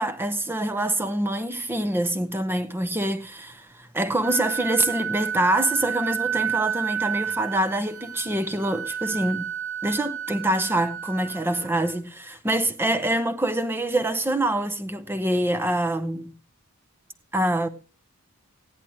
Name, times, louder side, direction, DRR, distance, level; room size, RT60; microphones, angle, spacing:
voice 1, 0.0-9.5 9.8-16.3 17.3-17.7, right 1 dB, 10° right, 0.7 m, -25 dB
Wind instrument woodwind instrument, 4.2-12.0, right 8 dB, 70° right, 1.9 m, -31 dB
16.0 x 10.5 x 3.1 m
head